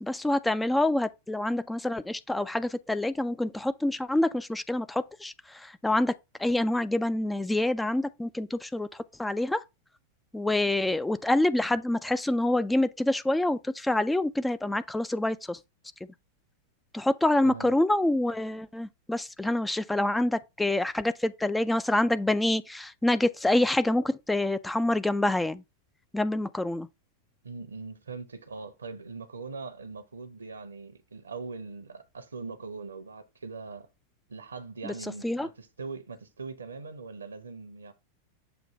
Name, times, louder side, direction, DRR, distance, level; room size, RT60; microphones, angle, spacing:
voice 1, 0.0-6.1 6.4-9.6 10.3-15.6 16.9-25.6 26.1-26.9 34.8-34.9 35.2-35.5, left 1 dB, 5° left, 0.4 m, -27 dB
voice 2, 27.4-33.9 34.3-37.9, right 4 dB, 75° right, 0.9 m, -41 dB
7.0 x 2.7 x 5.1 m
figure-of-eight pair, 90°, 0 cm